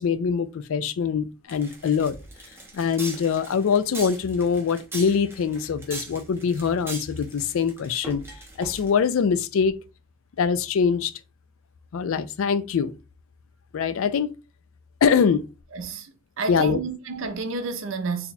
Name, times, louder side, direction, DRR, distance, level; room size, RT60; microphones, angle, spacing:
voice 1, 0.0-2.1 2.7-8.2 8.6-9.8 10.4-11.1 11.9-12.9 13.7-14.3 15.0-15.5 16.5-16.8, left 6 dB, 70° left, 0.3 m, -23 dB
sound 1, 1.5-9.1, right 2 dB, 10° right, 0.7 m, -40 dB
voice 2, 15.7-18.3, right 3 dB, 60° right, 0.5 m, -30 dB
2.8 x 2.2 x 4.0 m
head